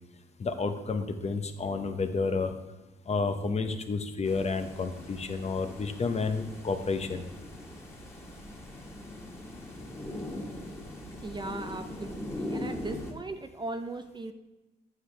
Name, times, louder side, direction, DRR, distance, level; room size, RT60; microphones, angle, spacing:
voice 1, 0.4-2.5 3.1-7.2, left 4 dB, 35° left, 8 dB, 0.7 m, -30 dB
sound 1, 4.2-13.1, left 1 dB, 15° left, 1.8 m, -41 dB
voice 2, 11.2-14.3, right 2 dB, 25° right, 8 dB, 0.5 m, -38 dB
9.4 x 6.5 x 3.3 m, 1.1 s
cardioid pair, 90°, 20 cm